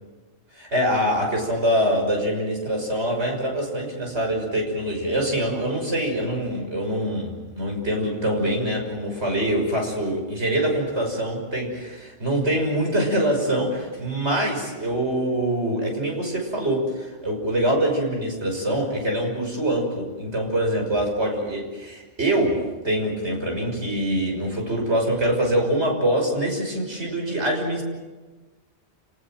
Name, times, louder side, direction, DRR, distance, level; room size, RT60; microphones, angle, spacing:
voice 1, 0.5-22.6 22.8-27.8, right 1 dB, 75° right, 1 dB, 6.6 m, -24 dB
29.0 x 19.5 x 7.7 m, 1.3 s
omnidirectional pair, 1.2 m